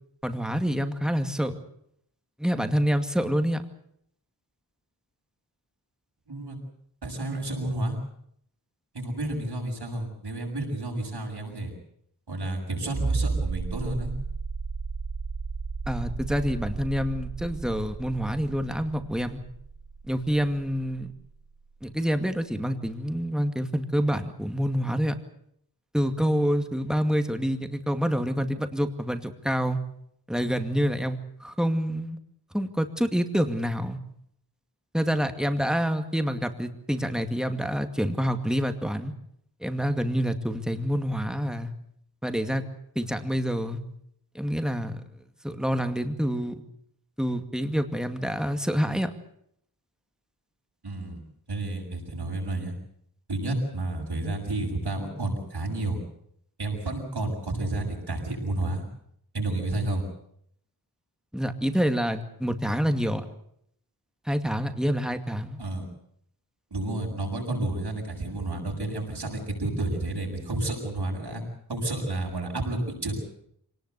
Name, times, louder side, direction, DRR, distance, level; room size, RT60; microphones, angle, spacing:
voice 1, 0.2-1.5 2.4-3.6 15.9-19.4 20.1-21.1 21.8-25.2 25.9-29.8 30.3-32.2 32.5-34.0 34.9-39.1 39.6-41.7 42.2-42.6 43.0-43.8 44.3-45.0 45.4-46.6 47.2-49.1 61.3-63.3 64.3-65.6, equal, ahead, 7 dB, 2.2 m, -27 dB
voice 2, 7.0-8.0 8.9-11.7 12.3-14.1 50.8-51.2 51.5-52.7 53.3-56.0 56.6-58.8 59.3-60.0 65.6-65.8 66.7-71.4 71.7-73.2, right 2 dB, 80° right, 1 dB, 7.4 m, -30 dB
sound 1, 12.9-21.4 22.9-23.0, right 4 dB, 55° right, 1.8 m, -33 dB
25.0 x 18.5 x 8.2 m, 0.70 s
wide cardioid pair, 75°, 39 cm